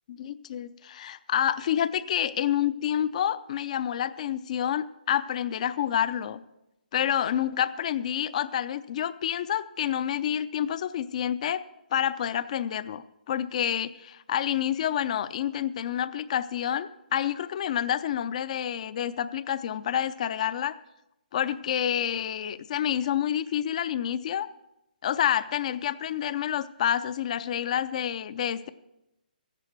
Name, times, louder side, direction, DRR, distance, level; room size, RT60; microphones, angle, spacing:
voice 1, 0.1-6.4 6.9-11.6 11.9-20.8 21.3-24.5 25.0-28.7, left 10 dB, 50° left, 15 dB, 0.6 m, -28 dB
14.0 x 10.5 x 4.6 m, 0.90 s
hypercardioid pair, 140°, 5 cm